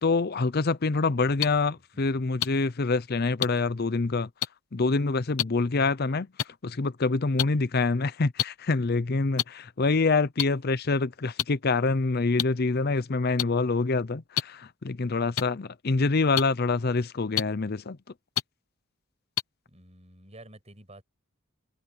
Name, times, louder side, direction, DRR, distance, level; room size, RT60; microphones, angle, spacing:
voice 1, 0.0-4.3 4.7-6.3 6.6-18.0, left 3 dB, 45° left, 0.6 m, -26 dB
voice 2, 1.2-2.3 19.7-21.0, right 1 dB, 30° right, 7.7 m, -52 dB
sound 1, 1.4-1.5 2.4-2.5 3.4-3.5 4.4-4.5 5.4-5.5 6.4-6.5 7.4-7.5 8.4-8.5 9.4-9.5 10.4-10.5 11.4-11.5 12.4-12.5 13.4-13.5 14.4-14.5 15.4-15.5 16.4-16.5 17.4-17.5 18.4-18.5 19.4-19.5, left 11 dB, 85° left, 1.0 m, -25 dB
head